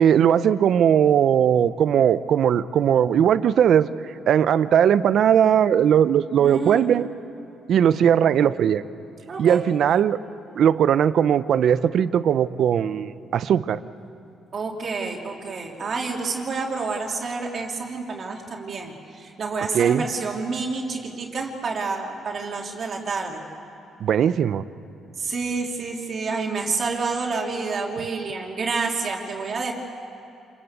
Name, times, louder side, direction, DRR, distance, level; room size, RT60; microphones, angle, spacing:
voice 1, 0.0-7.1 7.7-8.8 9.4-10.2 10.6-13.8 19.7-20.0 24.0-24.7, right 9 dB, 65° right, 14 dB, 0.7 m, -19 dB
voice 2, 6.4-7.0 9.3-9.6 14.5-23.4 25.2-29.7, right 4 dB, 50° right, 0 dB, 3.1 m, -28 dB
27.0 x 22.0 x 8.3 m, 2.8 s
cardioid pair, 90°, 0 cm